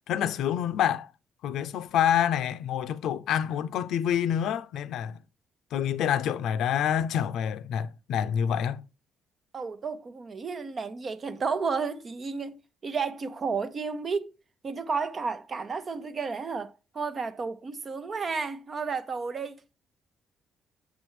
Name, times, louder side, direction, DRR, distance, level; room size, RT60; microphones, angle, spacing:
voice 1, 0.1-1.1 1.4-5.2 5.7-8.8, left 9 dB, 80° left, 0.5 m, -27 dB
voice 2, 9.5-14.3 14.6-19.6, right 5 dB, 40° right, 0.8 m, -32 dB
7.4 x 6.1 x 3.1 m
cardioid pair, 90°, 0 cm